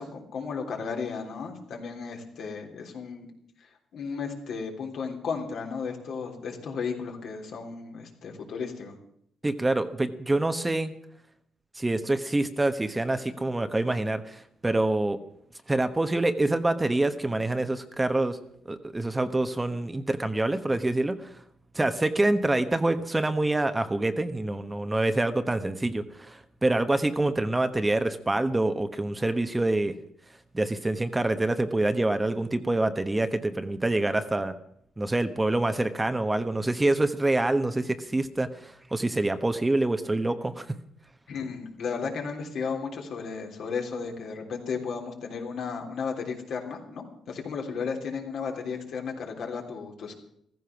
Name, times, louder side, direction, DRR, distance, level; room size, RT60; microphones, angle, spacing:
voice 1, 0.0-3.3 3.6-8.9 41.3-50.1, left 5 dB, 70° left, 2 dB, 3.4 m, -34 dB
voice 2, 9.4-10.9 11.8-15.2 15.7-18.4 18.7-21.4 21.7-29.9 30.5-34.5 35.0-40.8, right 2 dB, 15° right, 9 dB, 1.0 m, -26 dB
15.0 x 14.5 x 5.9 m, 0.72 s
cardioid pair, 90°, 0 cm